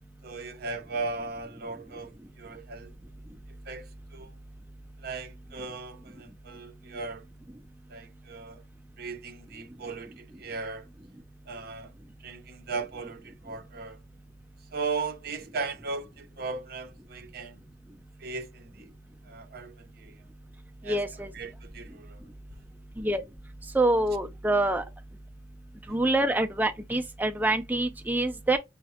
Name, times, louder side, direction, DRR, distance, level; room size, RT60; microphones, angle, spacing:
voice 1, 0.2-2.9 3.7-4.3 5.0-7.3 7.9-8.6 9.0-10.9 11.5-11.9 12.2-14.0 14.7-17.6 18.2-18.9 19.2-20.2 20.8-22.2, right 4 dB, 55° right, 0.7 m, -37 dB
voice 2, 20.9-21.3 23.0-23.2 23.7-24.8 25.9-28.6, right 2 dB, 10° right, 0.4 m, -26 dB
5.7 x 2.1 x 2.7 m
head